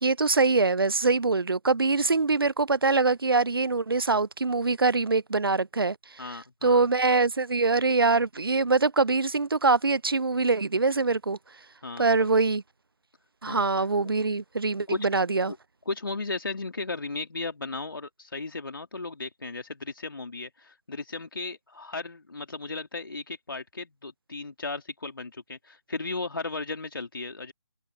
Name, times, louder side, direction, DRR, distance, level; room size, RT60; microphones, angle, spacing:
voice 1, 0.0-6.0 6.6-11.4 12.0-12.6 13.4-15.5, right 3 dB, 70° right, 0.7 m, -24 dB
voice 2, 6.2-6.9 11.8-12.3 13.5-13.6 14.9-15.6 15.9-27.5, left 3 dB, 60° left, 2.7 m, -35 dB
figure-of-eight pair, 150°, 12 cm